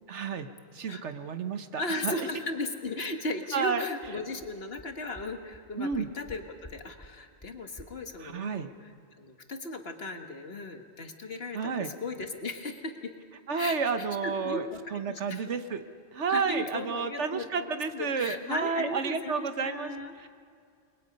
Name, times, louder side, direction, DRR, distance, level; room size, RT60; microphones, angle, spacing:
voice 1, 0.1-0.5 0.7-2.2 3.5-3.8 5.8-6.1 8.2-8.7 11.5-11.9 13.5-15.8 16.1-19.9 20.2-20.3, right 5 dB, 75° right, 9 dB, 1.4 m, -31 dB
voice 2, 1.8-13.1 13.5-14.8 15.1-15.5 16.3-20.1, left 2 dB, 55° left, 5 dB, 1.8 m, -37 dB
sound 1, 3.7-3.8 4.0-4.1 4.4-4.5 4.8-4.9 5.1-5.2 5.5-5.6 5.9-6.3 6.6-6.7 7.0-7.1 7.4-7.5 7.8-7.9, left 1 dB, 15° left, 1.3 m, -48 dB
30.0 x 21.5 x 5.3 m, 2.3 s
omnidirectional pair, 1.2 m